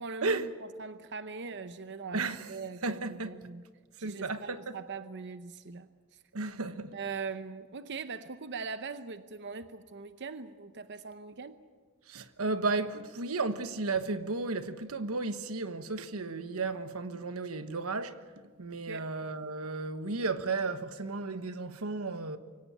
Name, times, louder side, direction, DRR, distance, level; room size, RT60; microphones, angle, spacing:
voice 1, 0.0-2.2 2.5-3.6 4.0-6.2 6.9-11.6 18.7-19.1, right 4 dB, 55° right, 0.8 m, -41 dB
voice 2, 2.1-2.5 2.8-3.3 4.0-4.6 6.3-7.0 12.1-18.2 18.6-22.4, right 3 dB, 90° right, 1.2 m, -33 dB
24.0 x 17.5 x 8.7 m
head